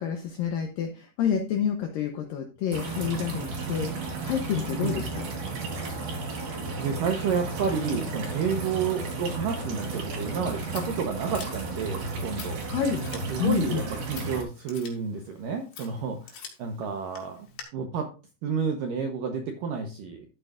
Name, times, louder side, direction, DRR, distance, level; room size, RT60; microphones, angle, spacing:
voice 1, 0.0-5.3 12.7-13.1 13.4-13.8, left 8 dB, 85° left, 5 dB, 2.0 m, -29 dB
sound 1, 2.7-14.4, right 3 dB, 60° right, 3.8 m, -33 dB
voice 2, 6.8-12.6 13.3-13.8 14.1-17.5 17.7-18.1 18.4-20.3, right 6 dB, 80° right, 4 dB, 2.0 m, -30 dB
Scissors, 10.2-17.6, left 7 dB, 65° left, 4.0 m, -48 dB
12.5 x 9.2 x 2.5 m, 0.32 s
omnidirectional pair, 5.2 m